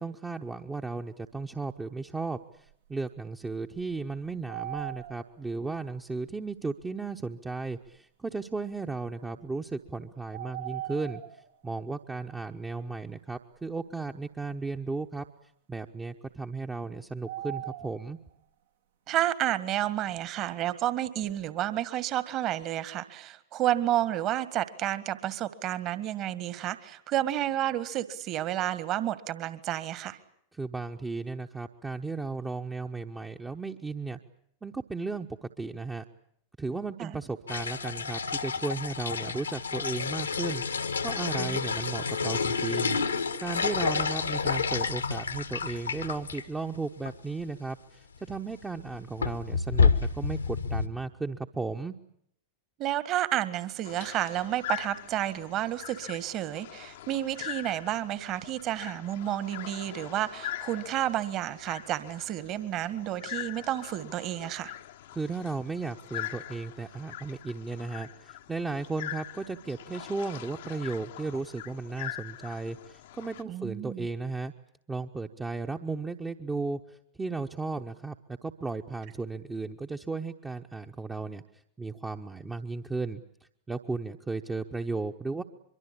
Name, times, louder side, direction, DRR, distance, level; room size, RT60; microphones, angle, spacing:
voice 1, 0.0-15.3 15.7-18.2 30.5-34.2 34.6-36.0 36.6-43.0 43.4-52.0 65.1-74.5 74.9-83.2 83.7-85.4, right 3 dB, 10° right, 4 dB, 1.0 m, -35 dB
sound 1, 2.7-2.8 3.5-5.5 6.2-6.3 7.9-8.0 10.3-11.5 17.3-18.1, right 14 dB, 65° right, 1.6 m, -39 dB
voice 2, 19.1-30.2 37.0-37.2 41.4-41.6 52.8-64.7 73.5-74.1, right 12 dB, 35° right, 14 dB, 1.8 m, -31 dB
sound 2, 37.5-46.4 46.7-46.8 47.1-47.2 48.2-48.4 48.8-50.9, left 5 dB, 80° left, 1.6 m, -29 dB
sound 3, 53.8-73.4, left 13 dB, 55° left, 1.0 m, -42 dB
24.0 x 24.0 x 8.6 m, 0.70 s
figure-of-eight pair, 90°, 0 cm